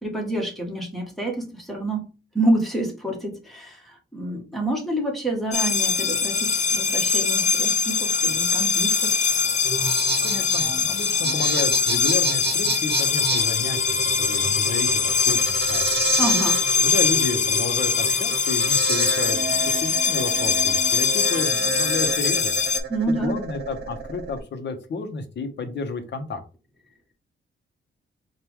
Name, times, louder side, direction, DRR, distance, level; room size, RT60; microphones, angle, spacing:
voice 1, 0.0-2.1 2.3-9.1 16.2-16.6 22.9-23.4, right 1 dB, ahead, 0 dB, 1.6 m, -27 dB
sound 1, 5.5-22.8, left 5 dB, 35° left, 0.6 m, -22 dB
sound 2, 9.6-24.4, right 5 dB, 55° right, 1.2 m, -30 dB
voice 2, 10.2-15.9 16.8-22.5 23.1-26.4, left 4 dB, 60° left, 7 dB, 0.9 m, -31 dB
sound 3, 12.9-21.5, right 6 dB, 35° right, 0.7 m, -41 dB
4.5 x 2.5 x 3.5 m, 0.33 s
cardioid pair, 105°, 21 cm